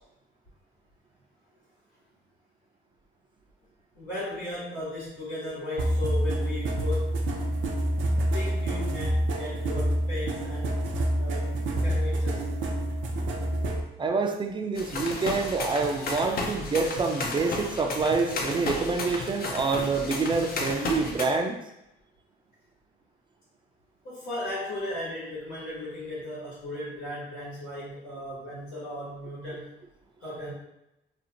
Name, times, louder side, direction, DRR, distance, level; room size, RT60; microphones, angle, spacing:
voice 1, 3.9-7.1 8.3-10.8 11.2-11.6 11.8-12.5 24.0-29.8 30.2-30.5, left 1 dB, 90° left, -10 dB, 1.3 m, -36 dB
sound 1, 5.8-13.8, right 1 dB, 75° right, 0.5 m, -27 dB
voice 2, 14.0-21.6, right 4 dB, 25° right, 3 dB, 0.4 m, -27 dB
sound 2, 14.8-21.3, left 3 dB, 50° left, 0.5 m, -33 dB
2.6 x 2.4 x 2.8 m, 0.89 s
cardioid pair, 90°, 20 cm